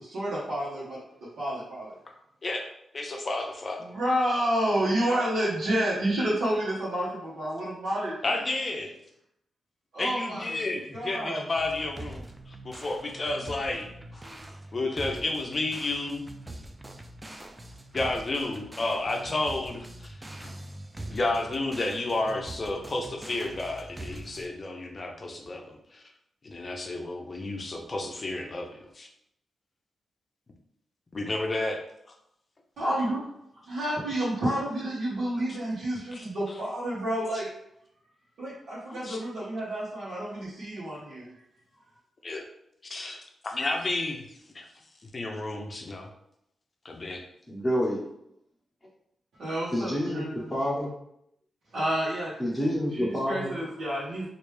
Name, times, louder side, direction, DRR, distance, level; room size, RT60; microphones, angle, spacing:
voice 1, 0.0-1.9 3.8-8.4 9.9-10.6 10.9-11.4 14.2-14.5 32.8-33.3 33.7-37.5 38.4-41.3 49.4-50.5 51.7-52.4 52.9-54.3, right 1 dB, 80° right, -8 dB, 1.1 m, -30 dB
voice 2, 2.9-3.8 8.2-8.9 10.0-13.9 14.7-16.2 17.9-20.5 21.1-26.0 26.4-29.1 31.1-31.8 36.1-36.2 38.9-39.2 42.2-42.5 42.9-43.2 43.4-44.3 44.5-44.7 45.1-46.1 46.8-47.2, left 2 dB, 35° left, 2 dB, 0.6 m, -31 dB
sound 1, 11.5-24.5, right 1 dB, 15° right, 0.3 m, -43 dB
voice 3, 47.5-48.0 49.7-50.3 50.5-50.9 52.4-53.5, equal, 5° left, -4 dB, 1.0 m, -28 dB
3.2 x 2.5 x 3.2 m, 0.77 s
cardioid pair, 100°, 0 cm